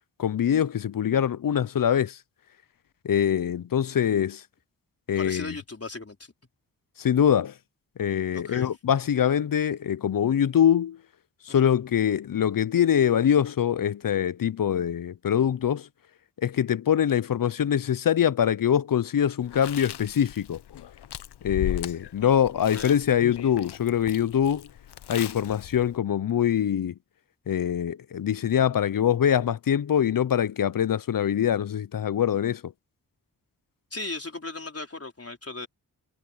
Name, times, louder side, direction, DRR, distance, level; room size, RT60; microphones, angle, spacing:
voice 1, 0.2-2.2 3.0-4.4 5.1-5.5 7.0-7.5 8.0-11.0 11.5-15.9 16.4-20.6 21.4-24.7 25.1-26.9 27.5-32.7, left 9 dB, 55° left, 0.7 m, -24 dB
voice 2, 5.2-6.2 8.3-8.7 11.5-11.7 22.2-23.0 33.9-35.7, left 3 dB, 35° left, 4.3 m, -37 dB
Chewing mastication, 19.4-26.0, left 11 dB, 85° left, 0.8 m, -38 dB
cardioid pair, 55°, 39 cm